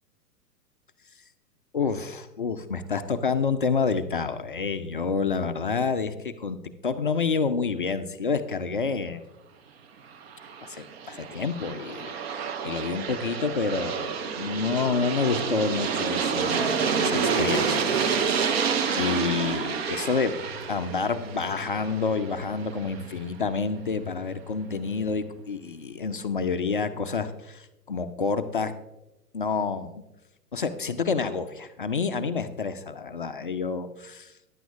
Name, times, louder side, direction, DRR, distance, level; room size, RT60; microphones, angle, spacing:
voice 1, 1.7-9.2 10.6-12.1 12.6-18.0 18.2-18.6 19.0-20.3 20.7-28.7 29.3-30.0 30.5-34.3, left 5 dB, 35° left, 9 dB, 0.4 m, -28 dB
Aircraft, 10.2-23.0, right 6 dB, 40° right, 0.7 m, -29 dB
sound 1, 20.4-25.4, left 4 dB, 15° left, 1.9 m, -46 dB
15.0 x 10.5 x 2.4 m, 0.94 s
figure-of-eight pair, 110°, 48 cm